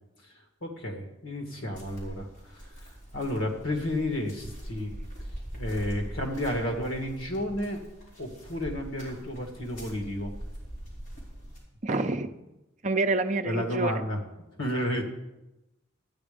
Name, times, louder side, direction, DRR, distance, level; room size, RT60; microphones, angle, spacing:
voice 1, 0.6-2.6 3.1-4.9 5.5-7.8 8.2-10.3 13.5-14.2 14.6-15.0, left 1 dB, 70° left, 3 dB, 1.9 m, -31 dB
sound 1, 1.7-11.6, equal, 40° left, 4.3 m, -42 dB
voice 2, 11.8-12.3 12.8-14.0, right 2 dB, 35° right, 7 dB, 0.6 m, -27 dB
13.0 x 9.5 x 5.1 m, 0.98 s
head